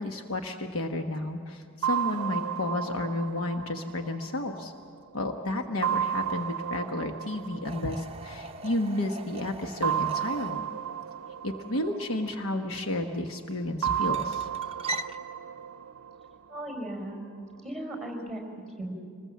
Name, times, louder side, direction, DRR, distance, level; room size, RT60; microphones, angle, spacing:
voice 1, 0.0-4.7 5.1-10.6 11.4-14.5, left 1 dB, 70° left, 4 dB, 1.1 m, -32 dB
sound 1, 1.8-5.2 5.8-8.7 9.8-12.9 13.8-16.9, right 10 dB, 85° right, 0.6 m, -33 dB
sound 2, 7.6-15.2, right 2 dB, 25° right, 0.6 m, -42 dB
voice 2, 16.5-17.2 17.6-18.9, right 1 dB, 5° left, 1 dB, 4.5 m, -37 dB
26.0 x 20.5 x 7.4 m, 2.3 s
head